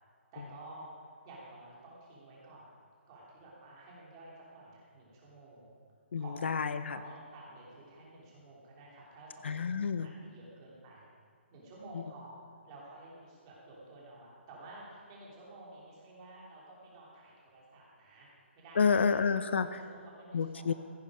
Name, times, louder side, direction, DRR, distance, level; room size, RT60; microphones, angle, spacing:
voice 1, 0.3-2.7 3.1-5.8 6.2-6.5 6.9-11.1 11.5-12.4 12.6-19.2 19.6-20.7, right 2 dB, 20° right, -5 dB, 3.1 m, -52 dB
voice 2, 6.1-7.0 9.4-10.1 18.8-19.8 20.3-20.7, left 5 dB, 65° left, 12 dB, 0.7 m, -29 dB
15.0 x 10.0 x 5.0 m, 2.1 s
hypercardioid pair, 175°, 7 cm